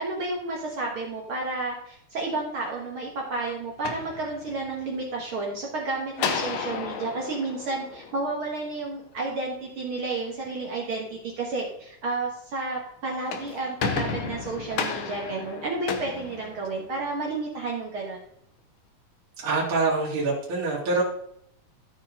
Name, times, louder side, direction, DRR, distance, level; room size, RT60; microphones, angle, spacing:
voice 1, 0.0-18.2, right 3 dB, 55° right, -1 dB, 1.9 m, -31 dB
sound 1, 3.7-4.9 6.2-8.6 13.0-17.1, left 6 dB, 70° left, 1.3 m, -33 dB
voice 2, 19.4-21.0, right 3 dB, 80° right, -5 dB, 3.5 m, -25 dB
13.5 x 5.1 x 3.7 m, 0.71 s
omnidirectional pair, 3.4 m